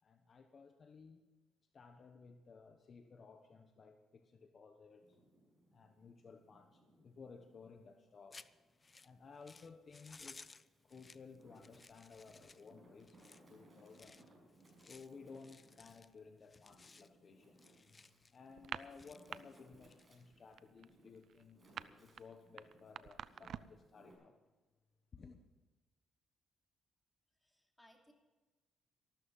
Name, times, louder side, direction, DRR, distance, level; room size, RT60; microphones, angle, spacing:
voice 1, 0.0-1.2 1.7-5.2 5.7-8.4 9.0-13.2 13.5-14.2 14.9-17.6 17.9-18.0 18.3-21.6 21.9-24.4 25.1-25.4, left 5 dB, 45° left, 1.0 m, -57 dB
Wind, 4.9-7.8 8.3-9.6 10.2-24.1, right 1 dB, 30° right, 6.1 m, -67 dB
sound 1, 8.3-20.7, left 4 dB, 30° left, 0.5 m, -61 dB
sound 2, 18.5-19.4 19.7-20.0 20.3-23.8, right 9 dB, 65° right, 0.5 m, -47 dB
voice 2, 27.3-28.1, equal, 5° left, 2.8 m, -66 dB
14.0 x 13.0 x 5.5 m
cardioid pair, 90°, 0 cm